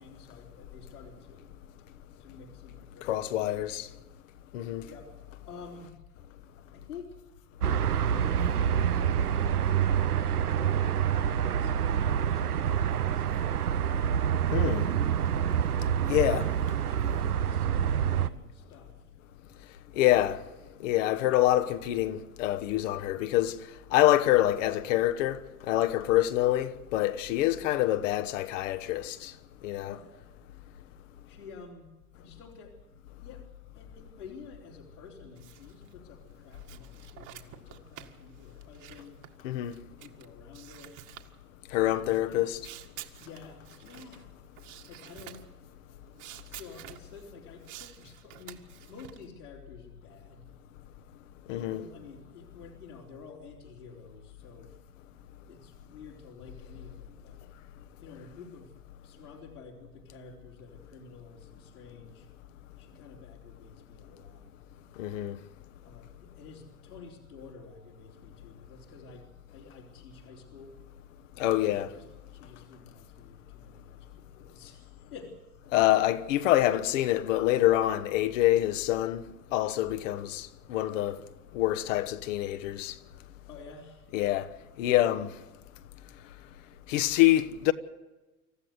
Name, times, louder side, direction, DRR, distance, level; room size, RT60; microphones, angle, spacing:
voice 1, 0.0-1.4 1.8-1.9 2.2-3.9 4.8-5.1 5.4-5.9 6.5-7.2 7.9-13.3 13.6-14.4 16.1-19.1 29.6-30.4 31.2-32.8 33.2-33.5 33.7-39.2 39.8-41.0 41.8-42.5 43.2-44.4 44.9-46.0 46.4-50.5 51.5-54.7 55.5-57.4 58.0-58.7 59.0-62.3 62.8-64.5 65.8-70.8 71.5-75.6 83.5-84.2, left 4 dB, 85° left, 4.3 m, -50 dB
voice 2, 3.1-3.9 4.5-4.8 14.5-14.9 16.1-16.5 20.0-20.4 20.8-23.5 23.9-25.4 25.7-29.3 29.6-29.9 39.4-39.7 41.7-42.6 51.5-51.8 65.0-65.4 71.4-71.9 75.7-79.2 79.5-81.2 81.5-82.9 84.1-84.5 84.8-85.3 86.9-87.7, left 14 dB, 60° left, 1.3 m, -26 dB
sound 1, 7.6-18.3, right 9 dB, 85° right, 0.9 m, -27 dB
sound 2, 35.4-35.9 36.3-40.3 40.5-41.3 42.1-44.2 44.6-45.5 46.2-47.3 47.6-49.3, right 13 dB, 40° right, 2.0 m, -49 dB
26.5 x 14.5 x 8.1 m
hypercardioid pair, 95°, 44 cm